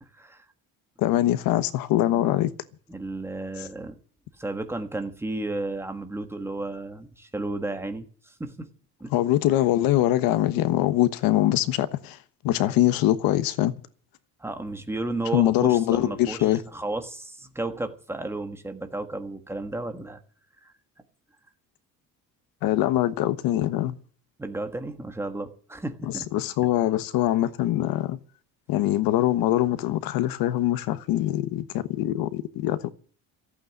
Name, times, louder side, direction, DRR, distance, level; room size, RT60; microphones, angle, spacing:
voice 1, 0.1-0.4 2.2-2.3 2.9-4.0 4.4-8.7 9.0-9.1 14.4-16.4 16.7-20.2 20.6-20.7 24.4-26.4, right 2 dB, 5° right, 1.3 m, -33 dB
voice 2, 1.0-2.5 9.1-12.2 12.4-13.8 15.3-16.6 22.6-24.0 26.0-28.2 28.7-32.9, left 14 dB, 85° left, 1.2 m, -23 dB
14.5 x 8.6 x 9.5 m
cardioid pair, 175°, 35 cm